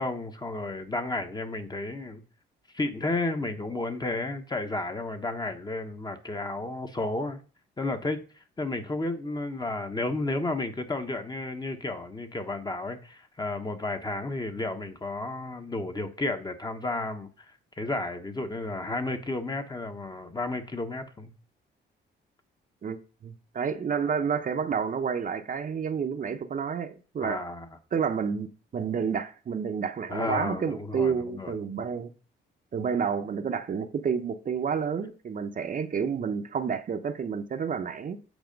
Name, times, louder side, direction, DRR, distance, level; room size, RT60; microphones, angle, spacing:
voice 1, 0.0-2.2 2.7-7.4 7.8-8.2 8.6-17.3 17.8-21.3 27.2-27.7 30.1-31.5, left 2 dB, 20° left, 1.1 m, -32 dB
voice 2, 23.2-27.4 27.9-28.5 28.7-32.1 32.7-38.2, right 6 dB, 45° right, 0.8 m, -30 dB
8.1 x 4.2 x 5.2 m
cardioid pair, 90°, 20 cm